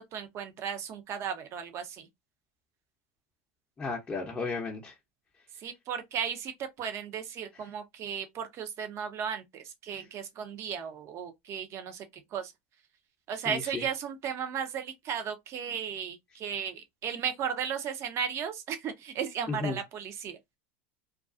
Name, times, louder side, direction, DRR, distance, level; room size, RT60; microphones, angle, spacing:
voice 1, 0.0-2.1 5.6-12.0 12.3-12.5 13.3-20.4, right 7 dB, 45° right, 0.7 m, -35 dB
voice 2, 3.8-4.9 13.5-13.8 19.5-19.8, left 4 dB, 20° left, 0.6 m, -34 dB
2.3 x 2.2 x 2.4 m
hypercardioid pair, 95°, 7 cm